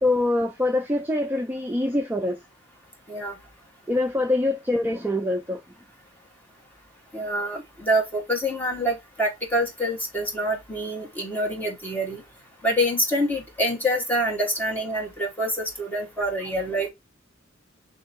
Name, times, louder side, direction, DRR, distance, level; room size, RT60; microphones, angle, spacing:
voice 1, 0.0-2.4 3.9-5.6, left 2 dB, 10° right, 0.4 m, -24 dB
voice 2, 7.1-12.2 12.6-16.9, equal, 10° left, 1.3 m, -26 dB
3.3 x 3.0 x 4.1 m
head